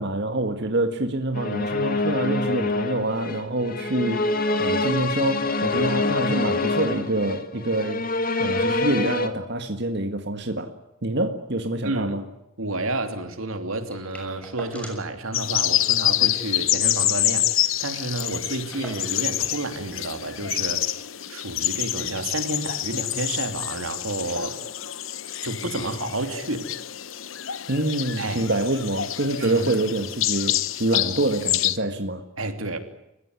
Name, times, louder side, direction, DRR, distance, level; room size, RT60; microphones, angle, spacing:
voice 1, 0.0-8.0 8.4-10.7 11.0-12.2 27.7-32.2, right 2 dB, 55° right, 6 dB, 1.9 m, -26 dB
sound 1, 1.3-9.3, left 2 dB, 45° left, 2.1 m, -25 dB
voice 2, 11.8-12.2 12.6-24.7 25.4-26.7 28.2-28.4 29.4-29.7 32.4-32.8, right 2 dB, 85° right, 7 dB, 3.0 m, -30 dB
sound 2, 13.9-15.2 15.5-15.6 15.9-16.1 16.5-17.6 17.8-17.9 18.1-19.4 20.3-20.4, equal, 5° left, 6.4 m, -44 dB
sound 3, 15.3-31.8, left 13 dB, 75° left, 1.0 m, -27 dB
29.0 x 16.0 x 9.8 m, 0.89 s
head